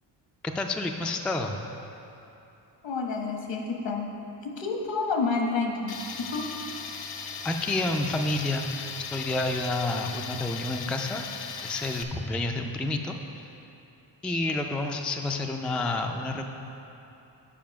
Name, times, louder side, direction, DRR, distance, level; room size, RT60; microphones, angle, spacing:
voice 1, 0.4-1.6 7.4-8.7 9.1-11.2 11.6-13.2 14.2-16.4, left 2 dB, 5° left, 3 dB, 0.3 m, -29 dB
voice 2, 2.8-4.1 4.6-5.9 6.3-6.5, left 4 dB, 75° left, 1 dB, 1.2 m, -29 dB
Tools, 5.9-12.0, left 6 dB, 60° left, 0.6 m, -38 dB
7.4 x 4.8 x 5.7 m, 2.8 s
cardioid pair, 90°, 44 cm